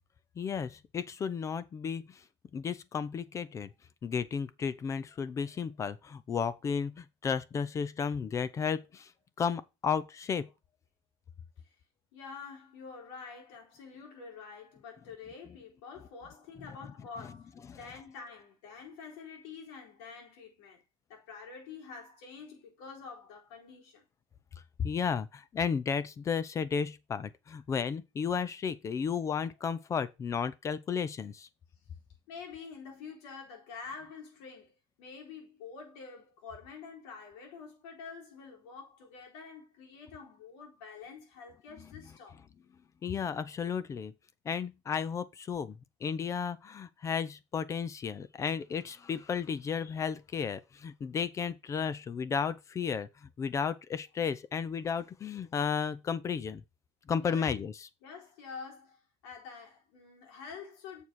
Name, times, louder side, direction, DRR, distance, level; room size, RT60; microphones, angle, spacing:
voice 1, 0.4-2.2 2.5-3.7 4.0-9.1 9.4-10.5 17.7-17.8 24.8-31.5 43.0-44.1 44.5-53.1 53.4-56.6 57.1-57.9, left 6 dB, 20° left, 0.5 m, -33 dB
voice 2, 12.1-20.8 21.1-24.1 32.3-42.4 57.2-57.6 58.0-61.0, left 5 dB, 85° left, 4.1 m, -47 dB
7.1 x 4.6 x 6.2 m
cardioid pair, 155°, 14 cm